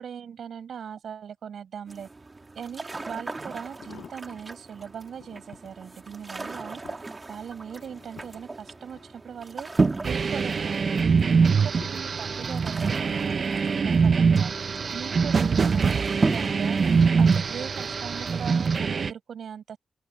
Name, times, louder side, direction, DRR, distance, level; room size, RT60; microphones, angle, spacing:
voice 1, 0.0-2.1 2.6-9.7 10.0-11.1 11.4-16.8 17.2-19.8, right 8 dB, 85° right, 7.5 m, -39 dB
sound 1, 1.9-18.7, right 3 dB, 30° right, 2.4 m, -35 dB
sound 2, 2.8-2.9 3.5-4.6 5.1-5.7 6.3-9.7 10.1-10.6 11.2-12.6 13.3-13.7 14.0-14.1, left 7 dB, 80° left, 5.9 m, -50 dB
sound 3, 10.0-19.1, right 5 dB, 55° right, 0.6 m, -23 dB
open air
wide cardioid pair, 115°, 0 cm